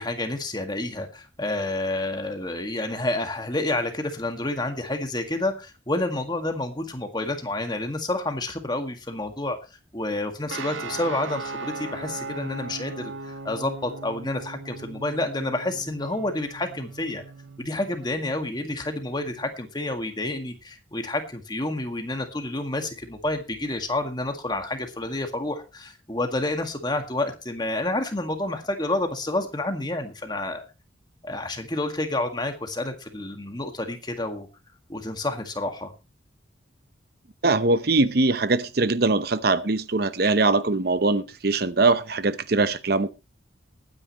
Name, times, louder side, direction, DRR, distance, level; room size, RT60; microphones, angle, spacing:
voice 1, 0.0-9.6 9.9-17.2 17.6-30.6 31.2-34.5 34.9-35.9, left 2 dB, 20° left, 1.9 m, -29 dB
sound 1, 10.5-19.4, right 3 dB, 85° right, 1.9 m, -39 dB
voice 2, 37.4-43.1, right 3 dB, 55° right, 0.8 m, -22 dB
20.0 x 9.7 x 3.1 m
head